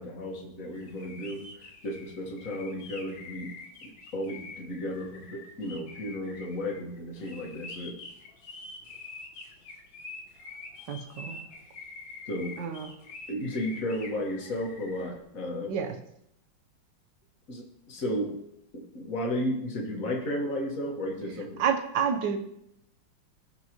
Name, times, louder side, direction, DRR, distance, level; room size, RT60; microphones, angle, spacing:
voice 1, 0.0-3.5 3.8-8.0 12.3-12.6 13.3-15.7 17.5-18.4 18.7-21.6, left 1 dB, 40° left, 0 dB, 1.9 m, -34 dB
sound 1, 0.8-15.1, left 3 dB, 70° left, 2.6 m, -46 dB
voice 2, 10.9-11.4 12.6-12.9 15.7-15.9 21.6-22.4, right 7 dB, 65° right, 7 dB, 1.5 m, -29 dB
16.5 x 5.9 x 3.1 m, 0.75 s
omnidirectional pair, 2.3 m